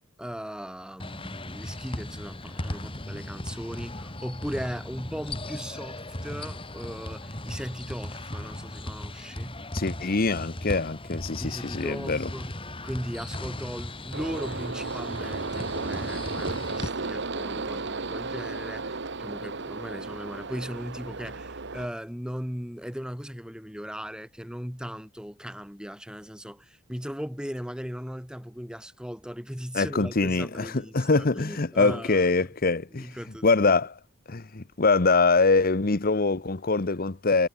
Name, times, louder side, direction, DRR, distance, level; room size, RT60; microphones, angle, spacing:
voice 1, 0.2-9.6 11.4-32.3 32.9-33.5, equal, 5° right, 3.5 m, -38 dB
sound 1, 1.0-16.9, left 1 dB, 25° left, 4.5 m, -37 dB
voice 2, 9.7-12.3 29.7-30.7 30.9-33.1 33.4-34.0 34.3-37.5, left 3 dB, 45° left, 0.9 m, -24 dB
sound 2, 14.1-21.9, right 3 dB, 55° right, 1.4 m, -34 dB
head